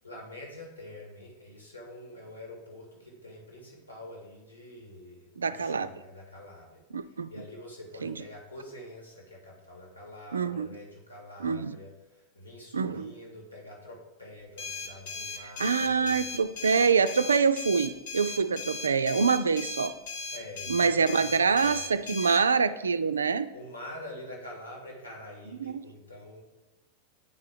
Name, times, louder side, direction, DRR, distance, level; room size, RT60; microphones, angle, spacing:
voice 1, 0.0-16.3 20.3-22.1 23.5-26.4, left 1 dB, 80° left, -1 dB, 2.2 m, -46 dB
voice 2, 5.4-5.9 6.9-7.3 8.0-8.2 10.3-10.8 11.4-11.8 12.7-13.1 15.4-19.9 20.7-23.5 25.6-25.8, right 5 dB, 70° right, 13 dB, 0.3 m, -25 dB
sound 1, 14.6-22.4, left 3 dB, 55° left, 1.0 m, -38 dB
8.4 x 4.6 x 5.0 m, 1.0 s
figure-of-eight pair, 90°, 0 cm